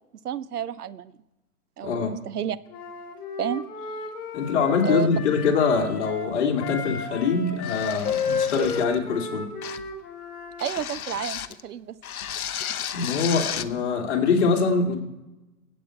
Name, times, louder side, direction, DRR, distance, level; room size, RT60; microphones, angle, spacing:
voice 1, 0.2-1.1 1.8-2.6 3.4-3.6 4.8-5.1 10.6-12.0, right 9 dB, 75° right, 16 dB, 0.8 m, -30 dB
voice 2, 1.8-2.2 4.3-9.5 12.9-15.0, left 5 dB, 45° left, 2 dB, 2.4 m, -24 dB
Wind instrument woodwind instrument, 2.7-10.7, left 5 dB, 20° left, 1.6 m, -33 dB
sound 1, 7.6-9.0 9.6-9.9 10.6-11.6 12.0-13.7, left 9 dB, 65° left, 0.9 m, -33 dB
26.0 x 8.6 x 4.4 m, 1.0 s
hypercardioid pair, 140°, 46 cm